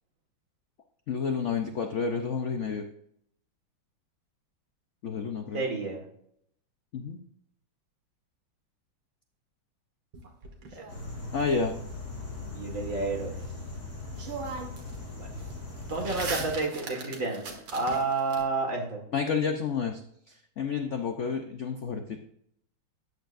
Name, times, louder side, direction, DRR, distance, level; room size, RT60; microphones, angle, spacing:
voice 1, 1.1-2.9 5.0-5.6 6.9-7.2 11.3-11.7 19.1-20.0 20.3-22.2, left 5 dB, 65° left, 5 dB, 0.7 m, -30 dB
voice 2, 5.5-6.0 10.8-10.9 12.5-13.4 15.2-15.3 15.9-19.0, right 3 dB, 40° right, 1 dB, 2.2 m, -30 dB
sound 1, 10.1-11.4 13.6-13.7 14.1-15.0 15.3-18.4, right 4 dB, 70° right, 2.4 m, -39 dB
sound 2, 10.9-16.5, left 3 dB, 40° left, 4.0 m, -39 dB
13.5 x 9.3 x 2.6 m, 0.71 s
omnidirectional pair, 2.2 m